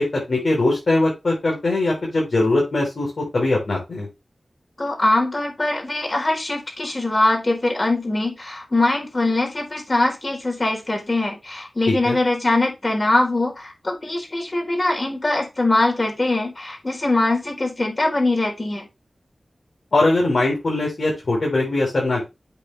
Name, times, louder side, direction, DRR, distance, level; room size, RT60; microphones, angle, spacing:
voice 1, 0.0-4.1 11.9-12.2 19.9-22.3, left 2 dB, 75° left, -3 dB, 4.2 m, -21 dB
voice 2, 4.8-18.8, left 2 dB, 45° left, 1 dB, 4.3 m, -22 dB
8.2 x 6.4 x 3.5 m, 0.24 s
cardioid pair, 45°, 0 cm